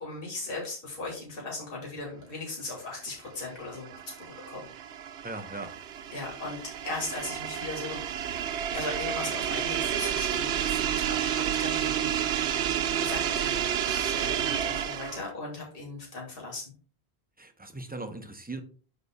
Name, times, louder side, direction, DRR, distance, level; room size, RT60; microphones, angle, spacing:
voice 1, 0.0-4.7 6.1-8.1 8.7-12.4 13.0-16.7, left 3 dB, 60° left, 2.1 m, -38 dB
sound 1, 3.4-15.3, right 9 dB, 85° right, 0.9 m, -30 dB
voice 2, 5.2-5.7 17.4-18.6, right 2 dB, 10° right, 0.5 m, -39 dB
11.5 x 4.1 x 2.2 m
omnidirectional pair, 1.1 m